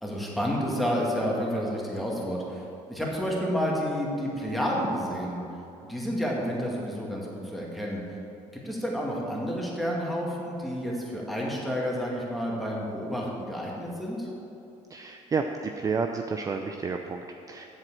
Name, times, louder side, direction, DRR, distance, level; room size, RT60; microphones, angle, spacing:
voice 1, 0.0-5.4 5.9-8.0 8.5-14.3, equal, ahead, -3 dB, 2.1 m, -30 dB
voice 2, 14.9-17.6, right 5 dB, 25° right, 5 dB, 0.5 m, -31 dB
7.9 x 7.4 x 7.5 m, 2.8 s
cardioid pair, 120°, 13 cm